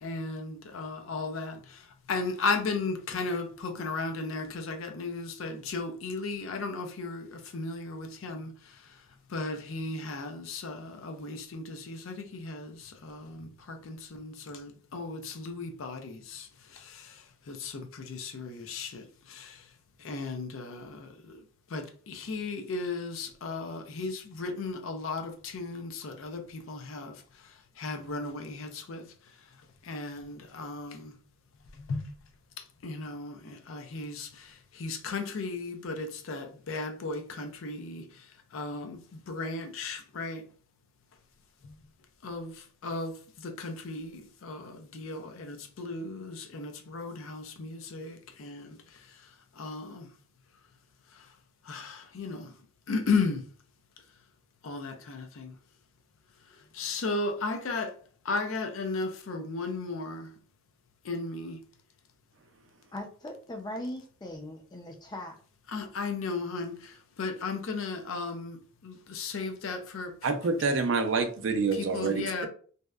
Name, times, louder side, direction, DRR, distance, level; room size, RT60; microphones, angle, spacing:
voice 1, 0.0-9.0 9.3-19.7 20.0-21.4 21.7-29.1 29.8-31.1 31.7-32.1 32.6-40.4 41.6-41.8 42.2-42.5 42.8-49.3 49.5-50.1 51.1-51.3 51.6-52.5 52.9-53.4 54.6-55.6 56.7-58.0 58.2-60.3 61.0-61.6 65.7-70.3 70.6-70.7 71.7-72.5, left 3 dB, 75° left, 0.5 m, -35 dB
voice 2, 62.9-65.4, left 1 dB, 20° left, 0.4 m, -39 dB
voice 3, 70.2-72.3, right 4 dB, 65° right, 0.4 m, -27 dB
2.7 x 2.1 x 2.3 m
head